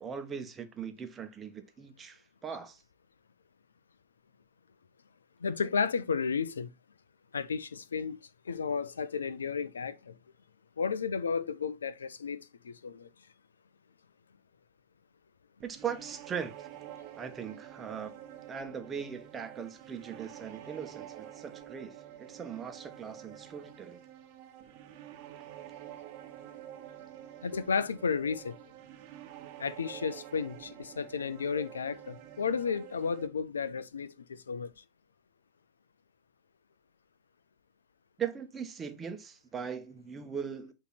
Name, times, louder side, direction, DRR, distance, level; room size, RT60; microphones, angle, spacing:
voice 1, 0.0-2.8 15.6-16.7 17.2-18.1 18.5-24.0 38.2-40.7, right 7 dB, 20° right, 1.1 m, -40 dB
voice 2, 5.4-6.7 7.3-8.2 8.5-10.1 10.8-12.4 12.6-13.1 27.4-28.6 29.6-34.7, left 5 dB, 70° left, 0.5 m, -33 dB
sound 1, 15.6-33.3, right 11 dB, 45° right, 0.8 m, -48 dB
8.2 x 3.0 x 4.2 m
figure-of-eight pair, 90°, 0 cm